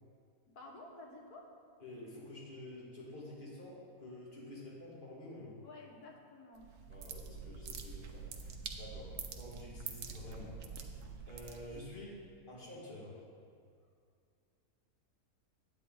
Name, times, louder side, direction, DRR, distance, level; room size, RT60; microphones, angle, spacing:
voice 1, 0.5-1.5 5.6-6.7, left 2 dB, 85° left, 0 dB, 1.8 m, -52 dB
voice 2, 1.8-5.6 6.9-10.6 10.9-12.2 12.5-13.2, left 1 dB, 35° left, -5 dB, 2.3 m, -49 dB
sound 1, 6.6-12.0, right 5 dB, 80° right, 1.3 m, -46 dB
10.0 x 8.6 x 3.9 m, 2.3 s
omnidirectional pair, 1.6 m